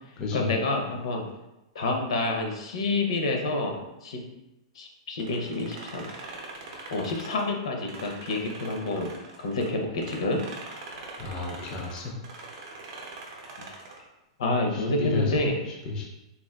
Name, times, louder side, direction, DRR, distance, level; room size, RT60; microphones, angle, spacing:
voice 1, 0.3-1.2 1.7-4.2 4.7-6.1 6.9-9.1 9.4-10.4 14.4-15.6, left 2 dB, 75° left, 2 dB, 0.6 m, -28 dB
sound 1, 5.2-9.7 10.0-14.1, right 3 dB, 45° right, 0.6 m, -43 dB
voice 2, 11.2-12.1 14.7-15.5 15.9-16.1, left 3 dB, 20° left, -1 dB, 0.4 m, -31 dB
3.6 x 2.4 x 2.2 m, 0.96 s
supercardioid pair, 165°, 3 cm